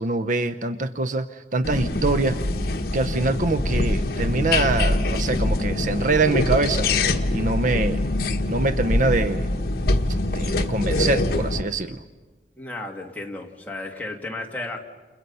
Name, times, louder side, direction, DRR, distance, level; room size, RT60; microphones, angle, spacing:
voice 1, 0.0-2.4 2.9-6.9 7.3-8.0 8.5-9.5 10.3-12.0, right 3 dB, 45° right, 11 dB, 0.7 m, -24 dB
sound 1, 1.6-11.6, left 2 dB, 60° left, 1.3 m, -24 dB
voice 2, 12.6-14.8, left 2 dB, 10° left, 0 dB, 2.4 m, -33 dB
29.5 x 29.5 x 5.6 m, 1.3 s
head